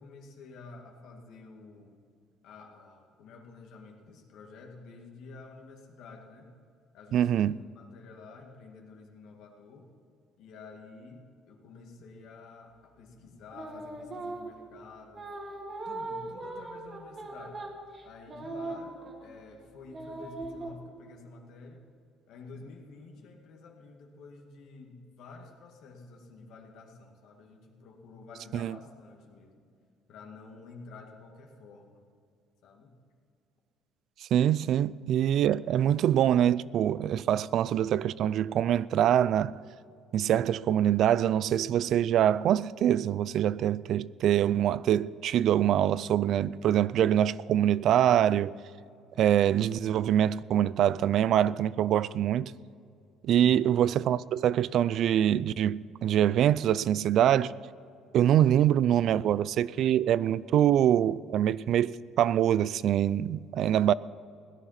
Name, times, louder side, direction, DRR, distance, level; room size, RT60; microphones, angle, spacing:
voice 1, 0.0-2.0 2.4-6.5 6.9-7.5 7.8-9.9 10.4-15.3 15.8-17.6 18.0-18.9 19.2-21.8 22.3-29.6 30.1-32.0 32.6-32.9 34.5-34.7 35.5-35.7 37.2-37.3 53.4-53.7, left 4 dB, 70° left, 2.1 m, -50 dB
voice 2, 7.1-7.5 28.5-28.8 34.3-39.5 40.1-48.5 49.2-52.5 53.2-57.5 58.1-63.9, right 10 dB, 60° right, 0.3 m, -24 dB
sound 1, 13.5-14.6 15.1-19.4 19.9-20.7, right 2 dB, 35° right, 2.0 m, -39 dB
16.5 x 10.5 x 5.9 m
cardioid pair, 105°, 0 cm